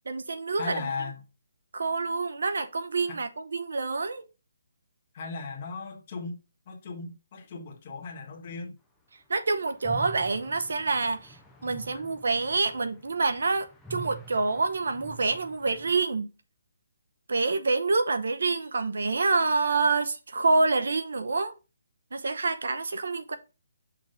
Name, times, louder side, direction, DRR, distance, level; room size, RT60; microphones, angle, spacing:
voice 1, 0.1-0.7 1.7-4.2 9.3-11.4 11.6-16.3 17.3-21.5 22.1-23.4, right 3 dB, 65° right, 0.9 m, -27 dB
voice 2, 0.6-1.2 3.1-3.2 5.1-6.4 6.7-8.8, left 4 dB, 25° left, 1.4 m, -37 dB
sound 1, 9.8-16.0, right 3 dB, ahead, 0.5 m, -46 dB
6.0 x 3.5 x 4.9 m
hypercardioid pair, 180°, 0 cm